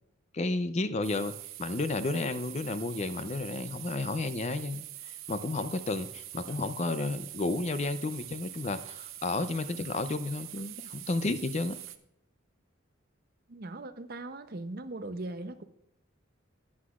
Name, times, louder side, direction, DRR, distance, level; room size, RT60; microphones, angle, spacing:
voice 1, 0.3-1.3 1.6-11.8, left 2 dB, 35° left, 12 dB, 0.4 m, -32 dB
sound 1, 1.0-12.0, right 14 dB, 85° right, 0.6 m, -44 dB
voice 2, 13.5-15.6, right 2 dB, 50° right, 9 dB, 0.6 m, -39 dB
14.0 x 9.7 x 2.4 m, 0.78 s
head